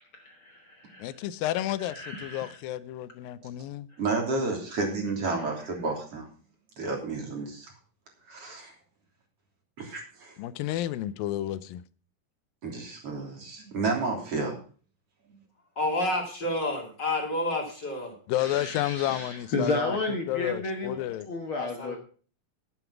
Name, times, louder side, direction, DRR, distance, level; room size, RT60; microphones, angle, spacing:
voice 1, 0.1-1.2 1.9-2.6 18.4-21.0 21.2-22.0, left 3 dB, 55° left, 1.6 m, -32 dB
voice 2, 1.0-3.9 10.4-11.8 18.3-20.0 20.3-21.3, left 13 dB, 85° left, 2.5 m, -31 dB
voice 3, 4.0-6.3 6.8-7.7 8.3-8.8 9.9-10.3 12.6-14.6, right 3 dB, 45° right, 4.1 m, -31 dB
voice 4, 15.8-18.1 21.6-22.0, left 1 dB, 30° left, 3.2 m, -29 dB
11.5 x 9.1 x 5.9 m
omnidirectional pair, 4.0 m